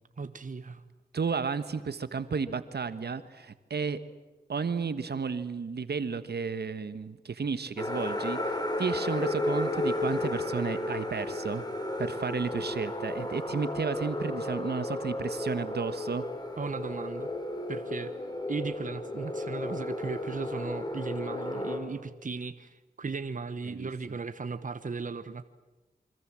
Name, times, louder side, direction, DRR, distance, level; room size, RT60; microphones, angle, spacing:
voice 1, 0.2-0.9 16.6-17.3 17.7-18.1 18.5-25.4, right 4 dB, 50° right, 12 dB, 1.2 m, -36 dB
voice 2, 1.1-4.0 4.5-11.6 12.0-16.2 23.6-23.9, right 5 dB, 70° right, 12 dB, 1.4 m, -33 dB
sound 1, 7.8-21.8, left 1 dB, 25° left, 5.8 m, -33 dB
28.0 x 25.0 x 7.6 m, 1.1 s
cardioid pair, 45°, 17 cm